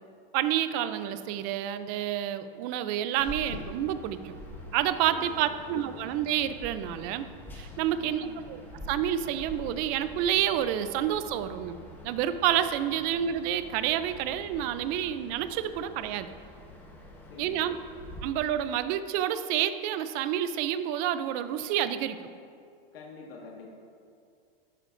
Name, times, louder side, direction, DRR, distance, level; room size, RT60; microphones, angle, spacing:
voice 1, 0.3-4.3 4.7-7.3 7.5-8.6 8.9-11.8 12.0-16.3 17.4-17.8 18.2-22.2, right 11 dB, 30° right, 12 dB, 0.4 m, -29 dB
sound 1, 3.2-18.2, left 1 dB, 5° left, 1.1 m, -46 dB
voice 2, 5.1-5.6 7.8-8.4 17.2-17.7 22.9-23.7, left 4 dB, 85° left, -2 dB, 1.7 m, -47 dB
13.0 x 11.0 x 2.5 m, 2.3 s
supercardioid pair, 150°, 29 cm